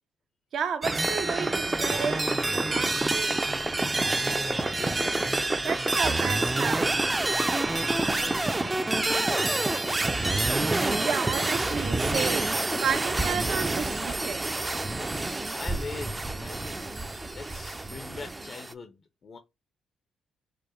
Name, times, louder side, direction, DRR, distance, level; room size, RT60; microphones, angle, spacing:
voice 1, 0.5-3.4 5.6-7.2 11.0-12.5 12.8-14.4, right 7 dB, 65° right, 0.5 m, -32 dB
sound 1, 0.8-18.7, right 2 dB, 15° right, 0.4 m, -27 dB
voice 2, 3.9-5.7 7.9-10.8 15.5-16.9 17.3-19.4, left 4 dB, 45° left, 0.6 m, -43 dB
4.9 x 2.1 x 3.0 m
cardioid pair, 90°, 0 cm